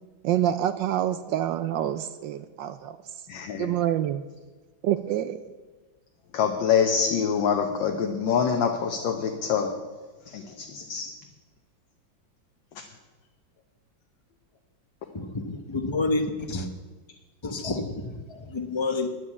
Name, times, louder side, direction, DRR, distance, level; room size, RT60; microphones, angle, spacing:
voice 1, 0.2-3.0 3.6-4.2 4.8-5.4, right 11 dB, 75° right, 11 dB, 1.2 m, -26 dB
voice 2, 3.3-3.7 6.3-9.7 10.3-11.1, left 7 dB, 70° left, 3 dB, 1.6 m, -25 dB
voice 3, 15.1-16.7 17.4-19.1, left 3 dB, 35° left, 7 dB, 0.4 m, -29 dB
10.0 x 8.4 x 8.6 m, 1.3 s
omnidirectional pair, 2.2 m